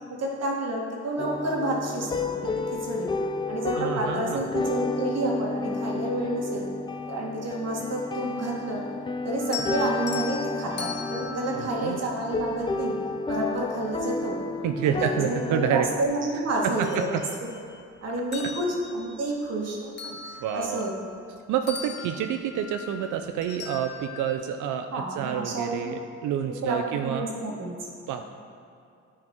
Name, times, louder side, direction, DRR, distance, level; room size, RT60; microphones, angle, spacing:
voice 1, 0.2-3.1 3.5-6.7 7.1-8.8 9.2-12.9 13.3-14.4 14.8-17.5 18.0-19.9 20.2-21.1 24.9-26.0 26.4-27.7, right 1 dB, 55° right, -2 dB, 1.7 m, -30 dB
sound 1, 1.2-16.0, left 3 dB, 15° left, 0.3 m, -31 dB
voice 2, 3.7-4.4 11.5-12.0 14.6-15.9 16.6-16.9 17.1-17.2 20.4-20.8 21.5-24.9 25.2-27.3 28.1-28.2, right 9 dB, 80° right, 6 dB, 0.5 m, -28 dB
sound 2, 9.4-12.7 14.4-14.5 15.0-16.2 16.6-17.8 18.2-21.4 21.7-24.3, left 5 dB, 35° left, 0.8 m, -39 dB
9.6 x 4.9 x 4.4 m, 2.5 s
cardioid pair, 90°, 30 cm